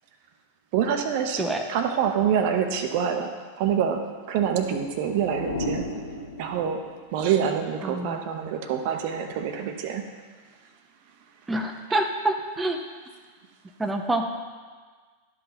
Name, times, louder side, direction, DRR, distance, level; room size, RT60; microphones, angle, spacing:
voice 1, 0.7-1.4 1.7-3.3 3.6-4.0 4.3-5.8 6.4-6.8 7.1-10.0, right 8 dB, 50° right, 6 dB, 0.8 m, -26 dB
sound 1, 4.4-7.1, left 1 dB, 80° left, 0.9 m, -35 dB
voice 2, 7.8-8.2 11.5-12.8 13.8-14.3, right 2 dB, 10° right, 4 dB, 0.7 m, -26 dB
11.5 x 5.8 x 4.2 m, 1.5 s
figure-of-eight pair, 90°, 0 cm